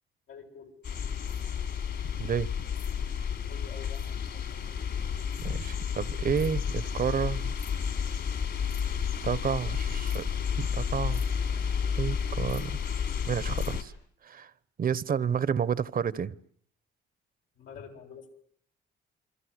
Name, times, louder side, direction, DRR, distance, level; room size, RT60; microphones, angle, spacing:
voice 1, 0.3-0.7 3.5-4.0 4.3-4.6 17.6-18.3, left 7 dB, 90° left, 1 dB, 7.7 m, -47 dB
sound 1, 0.8-13.8, left 7 dB, 60° left, 4.0 m, -31 dB
voice 2, 5.4-7.5 9.2-10.2 10.6-11.2 12.0-12.8 13.3-13.9 14.2-14.5 14.8-16.3, right 7 dB, 45° right, 18 dB, 1.1 m, -30 dB
27.5 x 24.5 x 8.2 m, 0.66 s
cardioid pair, 90°, 20 cm